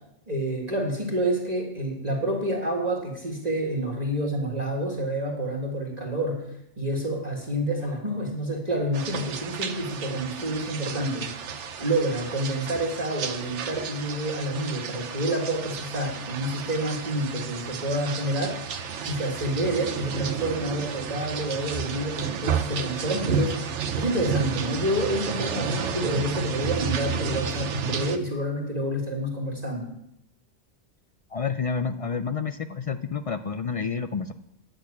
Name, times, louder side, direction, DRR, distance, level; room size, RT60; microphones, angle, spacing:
voice 1, 0.3-6.5 6.8-18.7 19.0-29.9, right 1 dB, 35° right, -1 dB, 1.9 m, -28 dB
sound 1, 8.9-28.2, right 6 dB, 80° right, 1.1 m, -32 dB
voice 2, 31.3-34.3, left 5 dB, 65° left, 9 dB, 0.3 m, -29 dB
10.0 x 6.3 x 8.4 m, 0.80 s
omnidirectional pair, 1.2 m